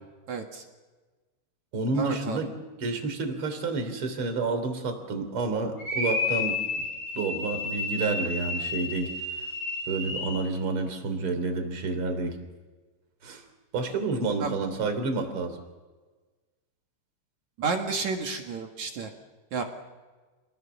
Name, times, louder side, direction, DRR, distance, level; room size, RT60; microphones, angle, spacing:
voice 1, 0.3-0.6 2.0-2.4 14.4-14.6 17.6-19.1 19.5-19.6, right 4 dB, 55° right, 3 dB, 2.1 m, -31 dB
voice 2, 1.7-2.5 2.8-6.8 7.1-9.1 9.9-12.4 13.2-13.4 13.7-15.6, right 3 dB, 30° right, 7 dB, 3.3 m, -29 dB
sound 1, 5.8-10.5, left 3 dB, 40° left, 4.5 m, -31 dB
27.5 x 20.0 x 7.1 m, 1.3 s
omnidirectional pair, 5.9 m